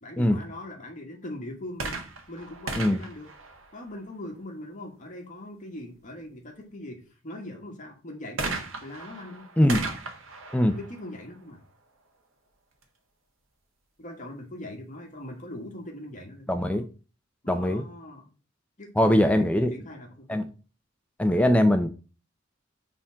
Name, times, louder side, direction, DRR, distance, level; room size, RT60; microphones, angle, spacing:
voice 1, 0.0-2.0 2.3-3.3 3.7-9.5 10.7-11.6 14.0-16.8 17.4-18.3 18.8-20.5, left 1 dB, 40° left, 1 dB, 1.3 m, -41 dB
sound 1, 1.7-4.3 8.4-12.0 12.8-12.9, right 3 dB, 80° right, 1.6 m, -37 dB
voice 2, 16.5-16.8 17.5-17.8 19.0-19.7 20.3-20.5 21.2-21.9, left 1 dB, 5° left, 7 dB, 0.5 m, -21 dB
6.8 x 3.7 x 5.6 m, 0.35 s
head